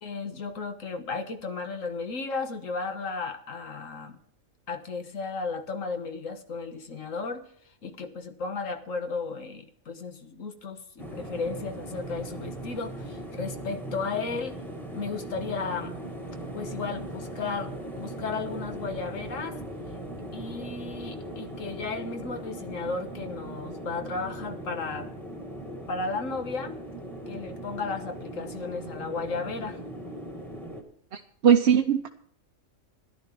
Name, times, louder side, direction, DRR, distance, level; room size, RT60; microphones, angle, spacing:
voice 1, 0.0-4.2 4.7-7.5 7.8-14.6 14.9-15.9 16.5-19.6 20.3-25.1 25.9-26.8 27.3-29.8, left 4 dB, 80° left, 7 dB, 1.7 m, -34 dB
sound 1, 11.0-30.8, right 1 dB, ahead, 1.9 m, -39 dB
voice 2, 31.1-32.1, right 8 dB, 55° right, 3 dB, 0.9 m, -21 dB
14.0 x 11.0 x 4.6 m, 0.64 s
omnidirectional pair, 1.4 m